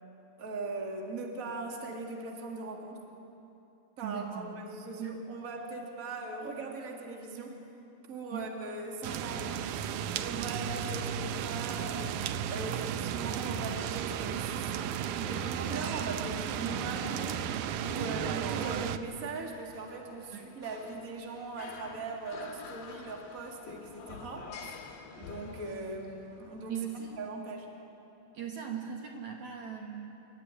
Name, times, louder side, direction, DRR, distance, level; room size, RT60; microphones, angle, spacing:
voice 1, 0.4-3.0 4.0-7.7 8.1-9.9 10.2-12.2 12.5-14.9 15.3-17.5 17.8-24.8 25.2-26.8 27.2-27.7, right 3 dB, 30° right, 1 dB, 1.9 m, -40 dB
voice 2, 4.0-4.5 5.0-5.2 8.3-8.5 20.3-20.5 26.7-27.1 28.3-30.1, right 8 dB, 60° right, 0 dB, 2.4 m, -39 dB
sound 1, 9.0-19.0, right 9 dB, 85° right, 1.7 m, -34 dB
sound 2, 15.1-27.3, left 5 dB, 65° left, 3.0 m, -50 dB
25.5 x 13.5 x 9.8 m, 2.8 s
omnidirectional pair, 4.3 m